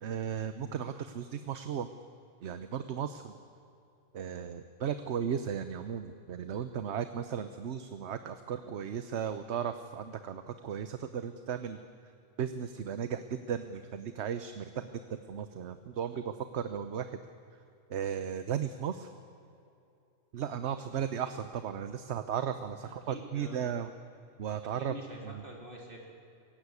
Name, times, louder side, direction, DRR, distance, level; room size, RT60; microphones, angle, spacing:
voice 1, 0.0-1.9 2.4-3.3 4.1-11.8 12.4-17.2 17.9-19.1 20.3-23.9 24.4-24.9 25.2-25.4, right 8 dB, 60° right, 10 dB, 1.0 m, -36 dB
voice 2, 22.8-23.7 24.8-26.1, right 1 dB, 40° right, -1 dB, 3.9 m, -46 dB
23.5 x 16.0 x 9.7 m, 2.7 s
omnidirectional pair, 1.4 m